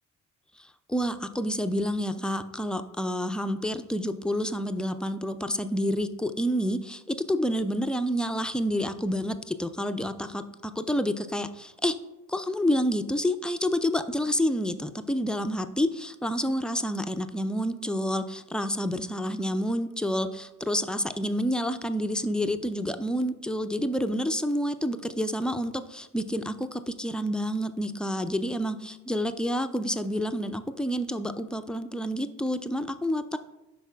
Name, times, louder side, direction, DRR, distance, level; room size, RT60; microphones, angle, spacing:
voice 1, 0.9-11.9 12.3-33.4, equal, ahead, 8 dB, 0.3 m, -29 dB
11.5 x 4.2 x 2.3 m, 0.96 s
hypercardioid pair, 45°, 40 cm